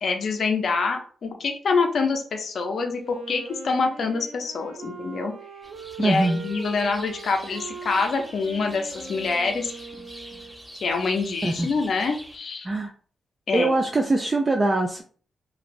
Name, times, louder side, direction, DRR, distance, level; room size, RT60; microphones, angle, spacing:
voice 1, 0.0-5.3 6.0-9.7 10.8-12.7 13.5-13.8, left 4 dB, 55° left, 4 dB, 0.5 m, -26 dB
Wind instrument woodwind instrument, 3.0-10.7, right 4 dB, 80° right, 0.5 m, -41 dB
sound 1, 5.6-12.4, equal, 5° right, 0.7 m, -44 dB
voice 2, 6.0-6.4 11.4-11.7 12.6-12.9 13.5-15.0, right 2 dB, 25° right, 2 dB, 0.3 m, -22 dB
2.6 x 2.5 x 3.0 m, 0.43 s
wide cardioid pair, 130°, 0 cm